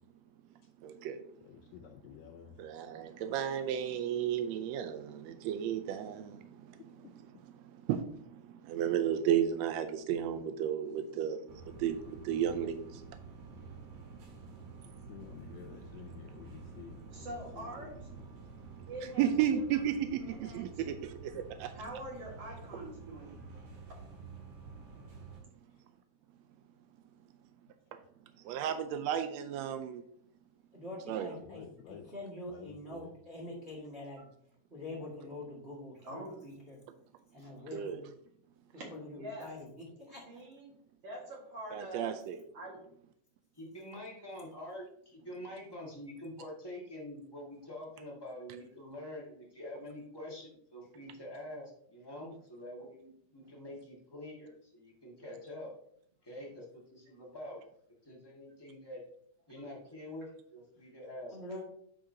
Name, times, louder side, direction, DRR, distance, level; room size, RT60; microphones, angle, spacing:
voice 1, 0.8-1.2 2.6-13.2 15.1-17.3 18.7-18.9 19.2-21.7 28.4-30.0 31.1-31.3 37.7-38.0 41.7-42.4, right 9 dB, 90° right, 8 dB, 1.5 m, -34 dB
voice 2, 1.4-2.5 15.1-17.7 21.3-21.4 31.4-32.1 32.5-33.1, left 8 dB, 80° left, 4 dB, 1.6 m, -51 dB
sound 1, 11.5-25.4, right 4 dB, 70° right, 2.9 m, -50 dB
voice 3, 17.1-17.9 18.9-19.3 19.6-20.6 21.7-23.3 36.0-36.3 37.4-37.5 38.7-39.5 40.3-40.7 41.0-42.1 42.5-42.8, right 1 dB, 55° right, -2 dB, 2.5 m, -44 dB
voice 4, 30.7-34.2 34.7-36.8 37.3-38.0 38.7-40.4 61.3-61.6, left 1 dB, 25° right, -2 dB, 1.7 m, -45 dB
voice 5, 43.5-55.7 56.2-57.6 58.0-59.0 59.5-61.4, left 1 dB, 35° left, -4 dB, 0.4 m, -46 dB
8.8 x 5.7 x 2.8 m, 0.66 s
omnidirectional pair, 3.7 m